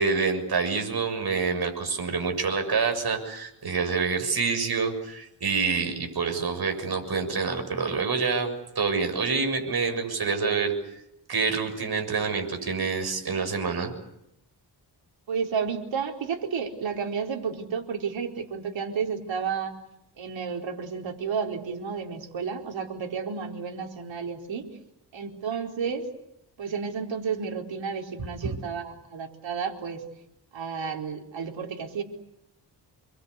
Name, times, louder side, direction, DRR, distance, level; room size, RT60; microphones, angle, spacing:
voice 1, 0.0-10.7 11.3-13.9, right 5 dB, 55° right, 5 dB, 6.8 m, -27 dB
voice 2, 15.3-19.7 20.2-24.7 25.1-26.1 26.6-30.0 30.5-32.0, right 6 dB, 90° right, 3 dB, 4.5 m, -31 dB
28.5 x 23.0 x 8.4 m, 0.82 s
wide cardioid pair, 105°, 44 cm